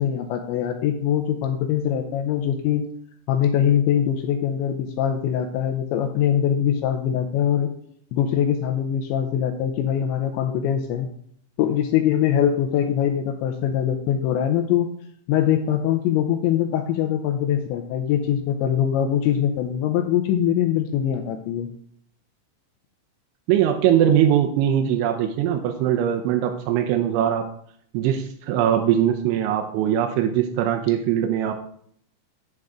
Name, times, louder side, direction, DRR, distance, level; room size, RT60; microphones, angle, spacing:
voice 1, 0.0-2.8 3.3-7.7 8.1-11.1 11.6-14.9 15.3-21.7, left 9 dB, 85° left, 4 dB, 2.7 m, -22 dB
voice 2, 23.5-27.5 27.9-31.5, right 10 dB, 80° right, 5 dB, 2.9 m, -21 dB
7.9 x 7.7 x 3.6 m, 0.63 s
omnidirectional pair, 5.6 m